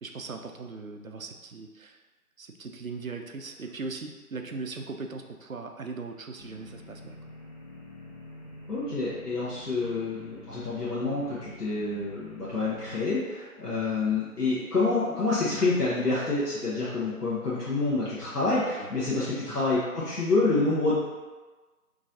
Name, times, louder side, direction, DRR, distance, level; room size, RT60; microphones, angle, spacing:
voice 1, 0.0-2.0 2.4-7.2 18.8-18.9, right 4 dB, 60° right, 4 dB, 0.5 m, -39 dB
sound 1, 6.4-13.1, left 1 dB, 50° left, 0.6 m, -47 dB
voice 2, 8.7-21.0, left 3 dB, 85° left, -8 dB, 1.1 m, -27 dB
3.7 x 3.0 x 2.7 m, 1.2 s
figure-of-eight pair, 170°, 46 cm